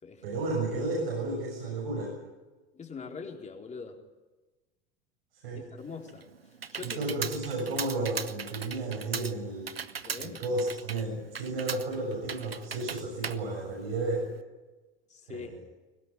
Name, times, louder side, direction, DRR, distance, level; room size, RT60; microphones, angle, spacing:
voice 1, 0.2-2.1 5.4-5.6 6.8-9.7 10.2-14.3 15.3-15.6, right 2 dB, 70° right, -2 dB, 7.4 m, -32 dB
voice 2, 2.7-4.0 5.5-6.2 6.7-7.1 10.1-10.4 15.1-15.6, left 5 dB, 25° left, 2 dB, 4.3 m, -42 dB
Computer keyboard, 5.8-14.4, right 6 dB, 85° right, 0.9 m, -39 dB
22.0 x 19.0 x 9.8 m, 1.2 s
figure-of-eight pair, 70°, 29 cm